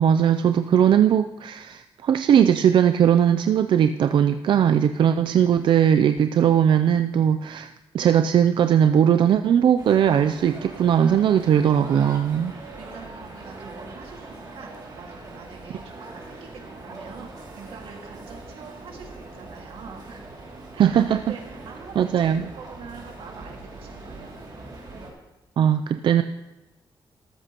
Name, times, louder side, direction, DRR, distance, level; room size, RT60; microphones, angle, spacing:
voice 1, 0.0-12.5 20.8-21.2 22.0-22.5 25.6-26.2, right 9 dB, 60° right, 9 dB, 0.4 m, -19 dB
sound 1, 9.8-25.1, right 2 dB, 45° right, 2.5 m, -41 dB
voice 2, 12.5-20.2 20.7-24.3, right 5 dB, 90° right, 2 dB, 1.9 m, -45 dB
13.5 x 13.0 x 2.9 m, 1.0 s
wide cardioid pair, 150°, 9 cm